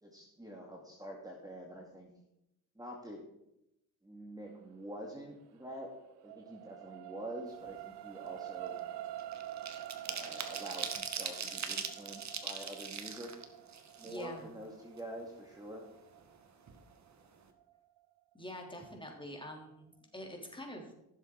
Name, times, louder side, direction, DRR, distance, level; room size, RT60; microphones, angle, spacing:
voice 1, 0.0-2.1 2.8-3.2 4.0-5.9 6.2-8.8 10.1-13.3 14.0-15.9, right 1 dB, 10° right, -1 dB, 2.3 m, -46 dB
sound 1, 5.5-18.0 18.5-18.6, right 13 dB, 90° right, 0.6 m, -47 dB
sound 2, 7.6-7.8 8.2-14.6 15.0-15.1 15.4-16.4 16.7-16.8 17.1-17.4, right 6 dB, 45° right, 1.6 m, -41 dB
voice 2, 14.0-14.5 18.3-20.9, equal, 10° left, 1 dB, 3.4 m, -45 dB
15.0 x 7.3 x 4.7 m, 0.84 s
cardioid pair, 80°, 39 cm